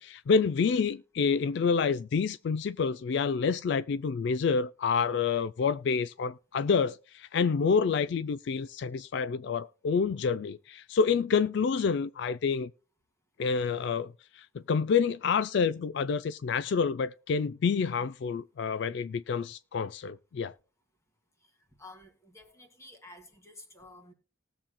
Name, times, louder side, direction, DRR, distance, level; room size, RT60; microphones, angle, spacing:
voice 1, 0.0-12.7 13.4-20.5, left 5 dB, 60° left, 0.3 m, -28 dB
voice 2, 21.8-24.1, left 2 dB, 15° left, 1.9 m, -51 dB
19.0 x 7.3 x 2.2 m
head